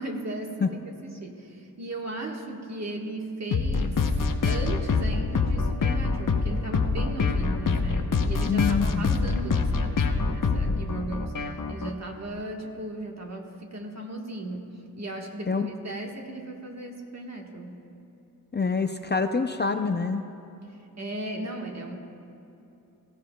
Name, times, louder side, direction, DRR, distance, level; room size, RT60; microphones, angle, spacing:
voice 1, 0.0-4.1 4.4-14.7 15.0-17.8 20.7-22.0, right 1 dB, 45° right, 1 dB, 1.4 m, -36 dB
sound 1, 3.5-11.9, left 4 dB, 65° left, 0.8 m, -25 dB
voice 2, 8.5-9.1 15.5-15.7 18.5-20.2, left 5 dB, 30° left, 7 dB, 0.4 m, -26 dB
18.5 x 16.0 x 2.3 m, 2.8 s
wide cardioid pair, 100°, 36 cm